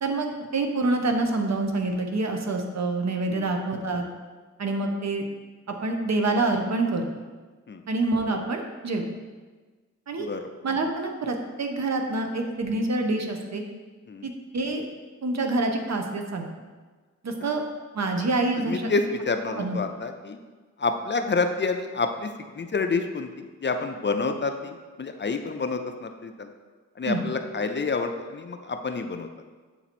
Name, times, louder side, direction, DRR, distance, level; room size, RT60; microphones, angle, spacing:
voice 1, 0.0-4.1 4.6-5.2 5.8-7.1 7.9-9.0 10.1-10.3 10.6-13.6 14.2-14.9 15.2-16.5 17.2-17.6 17.9-18.9 19.6-19.8 27.0-27.2, right 2 dB, 65° right, 3 dB, 0.8 m, -26 dB
voice 2, 18.7-20.4 20.8-26.5 27.0-29.3, left 4 dB, 40° left, 6 dB, 0.5 m, -28 dB
7.6 x 3.0 x 4.2 m, 1.4 s
cardioid pair, 60°, 29 cm